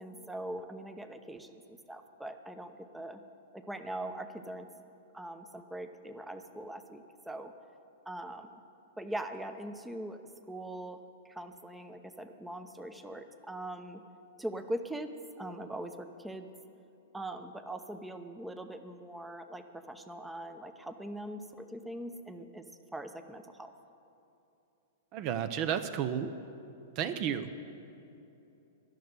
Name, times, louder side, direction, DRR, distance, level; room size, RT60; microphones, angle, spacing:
voice 1, 0.0-3.2 3.5-4.7 5.1-7.5 8.1-8.6 9.0-14.0 14.4-15.1 15.4-16.5 17.1-22.7 22.9-23.7, right 1 dB, 5° right, 6 dB, 0.7 m, -41 dB
voice 2, 25.1-26.3 27.0-27.5, right 9 dB, 45° right, 9 dB, 0.6 m, -32 dB
12.0 x 6.6 x 9.5 m, 2.8 s
hypercardioid pair, 115°, 0 cm